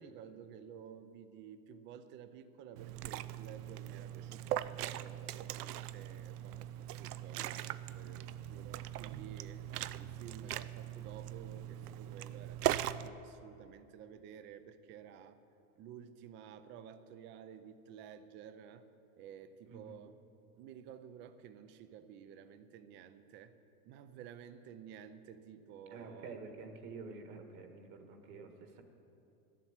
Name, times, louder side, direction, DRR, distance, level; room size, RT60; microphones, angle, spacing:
voice 1, 0.0-9.7 10.0-15.4 15.8-18.9 19.2-20.2 20.6-23.5 23.8-26.4, right 8 dB, 25° right, 11 dB, 0.5 m, -53 dB
Liquid, 2.8-13.1, right 13 dB, 85° right, 0.6 m, -40 dB
voice 2, 19.7-20.0 25.9-28.8, right 4 dB, 45° right, 5 dB, 1.6 m, -49 dB
12.5 x 7.5 x 9.5 m, 2.7 s
supercardioid pair, 140°, 45 cm